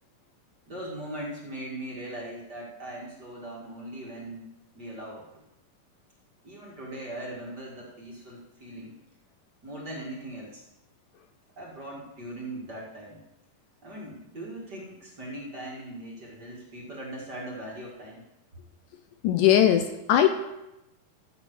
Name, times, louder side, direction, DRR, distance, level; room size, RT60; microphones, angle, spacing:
voice 1, 0.7-4.4 4.7-5.4 6.4-8.9 9.6-10.6 11.6-13.2 13.8-18.2, right 1 dB, 35° right, -4 dB, 2.3 m, -40 dB
voice 2, 19.2-20.3, left 11 dB, 75° left, 7 dB, 2.1 m, -20 dB
14.5 x 6.7 x 6.4 m, 0.92 s
omnidirectional pair, 4.1 m